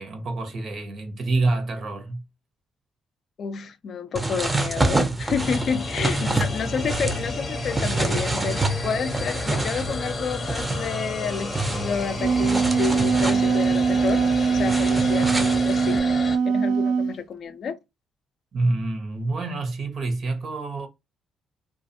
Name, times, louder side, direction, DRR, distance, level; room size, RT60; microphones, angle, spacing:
voice 1, 0.0-2.2 6.2-6.4 18.5-20.9, right 2 dB, 60° right, 0.9 m, -27 dB
voice 2, 3.4-14.3 14.5-16.0 16.4-17.8, left 6 dB, 60° left, 0.4 m, -30 dB
sound 1, 4.2-16.0, right 2 dB, 15° right, 0.6 m, -28 dB
sound 2, 5.4-16.4, left 4 dB, 40° left, 0.7 m, -33 dB
Wind instrument woodwind instrument, 12.0-17.1, right 5 dB, 85° right, 0.3 m, -22 dB
2.4 x 2.3 x 2.7 m
cardioid pair, 90°, 0 cm